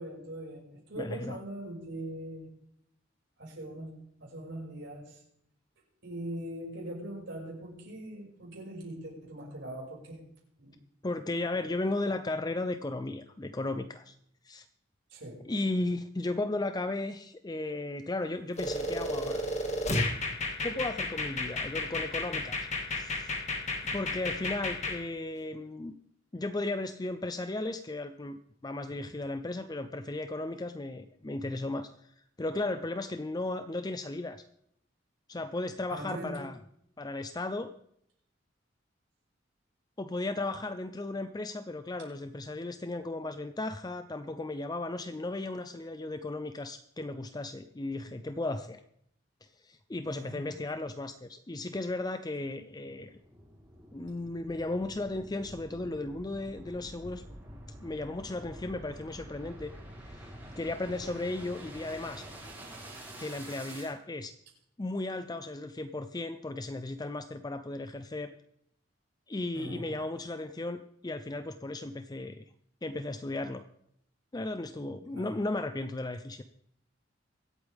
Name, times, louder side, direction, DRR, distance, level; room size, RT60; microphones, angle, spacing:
voice 1, 0.0-2.5 3.4-5.2 6.0-10.2 10.6-10.8 15.1-15.5 28.9-29.0 35.9-36.4 50.1-50.4 69.5-69.9 75.1-75.3, right 1 dB, 70° right, -3 dB, 6.0 m, -41 dB
voice 2, 1.0-1.4 11.0-14.2 14.4-14.6 15.4-19.5 20.6-23.4 23.9-25.9 26.3-34.4 35.3-36.6 37.0-37.7 40.0-48.8 49.4-53.2 53.9-57.2 57.8-59.7 60.0-62.3 63.2-64.3 64.8-68.3 69.3-72.4 72.8-73.6 74.3-76.4, left 2 dB, 20° left, 9 dB, 0.5 m, -35 dB
sound 1, 18.6-25.0, left 2 dB, 35° left, 2.0 m, -32 dB
sound 2, 52.4-63.9, right 1 dB, 10° right, 5.2 m, -48 dB
24.0 x 8.5 x 3.5 m, 0.71 s
head